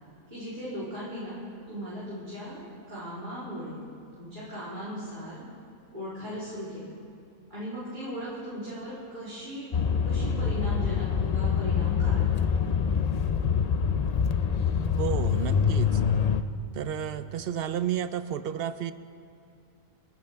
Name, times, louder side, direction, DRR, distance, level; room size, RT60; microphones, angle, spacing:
voice 1, 0.3-1.4 1.7-2.6 2.9-3.8 4.2-5.4 5.9-7.0 7.5-9.7 10.0-12.7, equal, 35° right, -11 dB, 3.7 m, -38 dB
sound 1, 9.7-16.4, left 7 dB, 70° left, 0.3 m, -25 dB
voice 2, 15.0-16.0 16.7-18.9, right 9 dB, 65° right, 12 dB, 0.6 m, -31 dB
30.0 x 10.5 x 3.5 m, 2.4 s
omnidirectional pair, 1.4 m